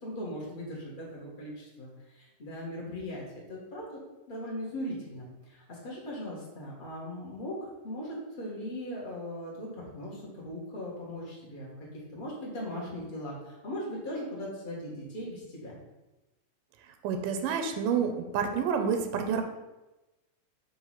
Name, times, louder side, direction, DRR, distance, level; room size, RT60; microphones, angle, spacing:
voice 1, 0.0-3.2 3.5-3.9 4.3-7.6 7.8-15.8, left 1 dB, 50° left, -5 dB, 0.6 m, -39 dB
voice 2, 17.0-19.4, right 6 dB, 85° right, 6 dB, 2.3 m, -28 dB
6.1 x 3.1 x 5.7 m, 1.0 s
omnidirectional pair, 3.8 m